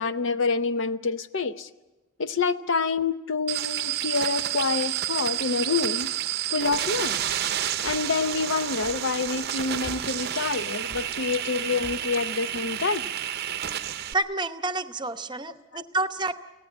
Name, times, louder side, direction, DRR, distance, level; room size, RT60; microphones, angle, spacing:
voice 1, 0.0-1.7 2.2-6.1 6.5-7.2 7.8-13.1 15.7-15.8, left 4 dB, 60° left, 11 dB, 0.7 m, -27 dB
sound 1, 3.5-14.1, right 11 dB, 50° right, 0.7 m, -30 dB
sound 2, 7.8-8.1 8.8-9.0 9.8-10.1 10.9-11.1 11.8-12.0, equal, 15° left, 3.6 m, -44 dB
voice 2, 14.1-16.3, right 2 dB, 20° right, 10 dB, 0.9 m, -29 dB
24.5 x 17.0 x 8.6 m, 1.1 s
head